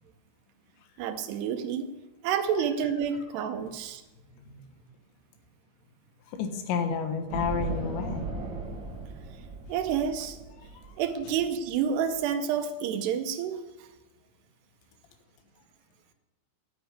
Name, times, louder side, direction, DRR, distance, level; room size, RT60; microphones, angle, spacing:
voice 1, 1.0-1.9 2.2-4.0 9.7-10.4 11.0-13.6, right 7 dB, 75° right, 8 dB, 2.8 m, -29 dB
voice 2, 4.4-4.7 6.3-8.3, left 6 dB, 80° left, 6 dB, 3.6 m, -31 dB
sound 1, 7.3-12.2, right 3 dB, 50° right, 1.5 m, -37 dB
9.8 x 9.1 x 9.6 m, 1.1 s
omnidirectional pair, 5.1 m